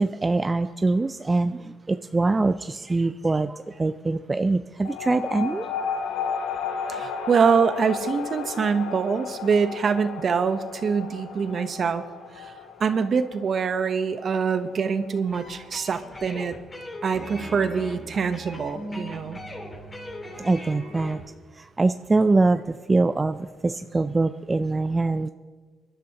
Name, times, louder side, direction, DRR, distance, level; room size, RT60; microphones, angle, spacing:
voice 1, 0.0-5.7 20.4-21.2 21.5-25.3, right 3 dB, 25° right, 10 dB, 0.4 m, -23 dB
sound 1, 4.8-15.8, left 6 dB, 85° left, 0.9 m, -34 dB
voice 2, 6.9-12.0 12.3-12.5 12.8-16.5 17.0-19.4, right 6 dB, 50° right, 10 dB, 0.9 m, -24 dB
sound 2, 15.3-21.2, left 1 dB, 25° left, 3.7 m, -39 dB
25.0 x 11.5 x 3.0 m, 1.4 s
cardioid pair, 90°, 0 cm